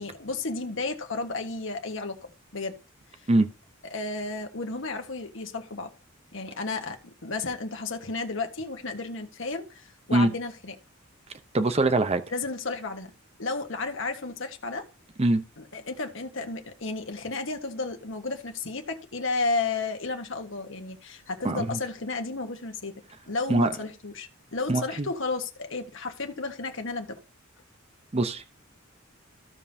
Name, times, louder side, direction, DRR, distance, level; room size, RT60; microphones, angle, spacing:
voice 1, 0.0-2.8 3.2-3.3 3.8-5.9 6.3-10.7 12.3-13.1 13.4-14.9 15.6-22.9 23.3-27.2, left 3 dB, 70° left, 1.4 m, -33 dB
voice 2, 11.5-12.2 15.2-15.4 21.4-21.7 23.5-23.7 24.7-24.8 28.1-28.4, right 2 dB, 30° right, 0.7 m, -22 dB
15.0 x 5.3 x 2.7 m
head